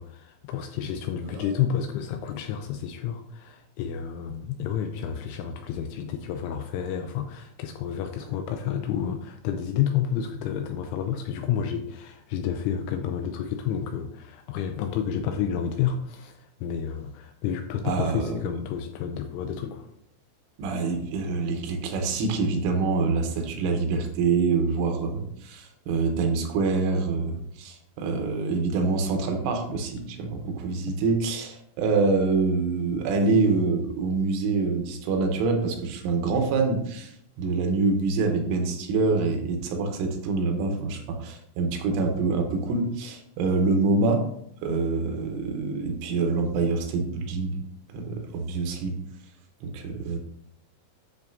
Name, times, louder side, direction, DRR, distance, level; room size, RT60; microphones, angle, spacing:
voice 1, 0.0-19.9 29.7-29.8, left 8 dB, 85° left, 6 dB, 2.8 m, -30 dB
voice 2, 17.9-18.4 20.6-44.3 44.6-47.6 47.9-49.0 49.6-50.2, right 4 dB, 75° right, 4 dB, 3.3 m, -26 dB
10.5 x 6.8 x 2.7 m, 0.72 s
omnidirectional pair, 5.9 m